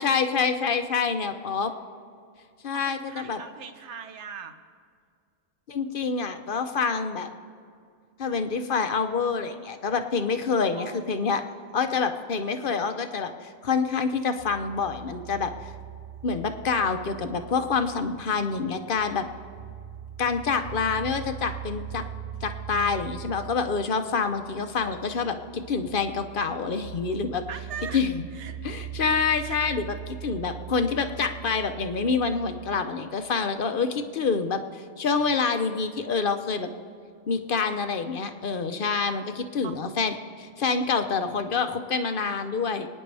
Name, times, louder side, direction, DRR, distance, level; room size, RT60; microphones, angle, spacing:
voice 1, 0.0-1.7 2.6-3.4 5.7-7.3 8.2-11.4 11.7-15.7 16.2-19.3 20.2-22.0 22.4-27.4 27.9-28.2 28.6-36.7 37.3-42.9, left 5 dB, 50° left, 7 dB, 0.9 m, -27 dB
voice 2, 2.7-4.5 10.8-11.3 11.6-12.0 27.5-28.0 28.3-28.8 29.4-29.6 30.0-30.1 39.6-39.7, right 7 dB, 75° right, 8 dB, 1.2 m, -41 dB
sound 1, 14.4-32.8, right 10 dB, 45° right, 0.6 m, -41 dB
28.0 x 9.7 x 3.4 m, 2.3 s
omnidirectional pair, 1.2 m